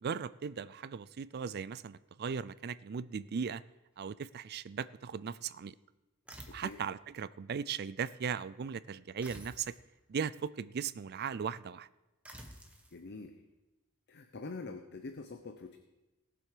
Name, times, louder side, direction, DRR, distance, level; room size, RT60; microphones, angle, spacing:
voice 1, 0.0-3.6 4.0-5.7 6.5-9.7 10.1-11.9, right 6 dB, 45° right, 0.4 m, -38 dB
sound 1, 6.3-6.9 9.2-9.8 12.2-12.9, right 1 dB, 5° right, 1.4 m, -50 dB
voice 2, 6.5-6.8 12.9-13.3 14.1-15.8, left 3 dB, 50° left, 0.8 m, -45 dB
18.0 x 7.7 x 5.0 m
head